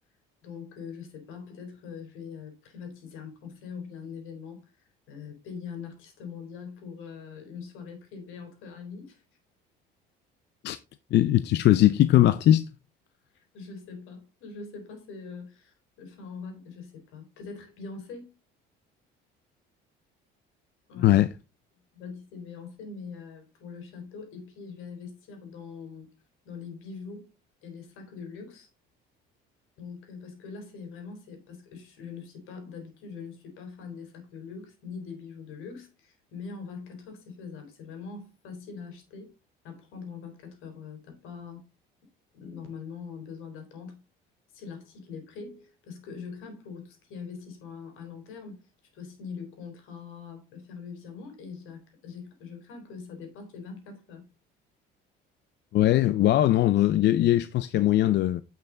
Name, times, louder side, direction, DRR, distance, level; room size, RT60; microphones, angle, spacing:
voice 1, 0.4-4.7 5.1-9.2 13.5-18.3 20.9-21.2 21.9-26.1 26.5-27.3 27.6-28.7 29.8-39.3 39.6-41.6 42.3-44.0 44.5-48.7 48.9-54.3, left 5 dB, 75° left, 3.8 m, -42 dB
voice 2, 11.1-12.6 21.0-21.3 55.7-58.4, left 13 dB, 55° left, 0.5 m, -20 dB
9.0 x 5.9 x 3.8 m
cardioid pair, 95°, 21 cm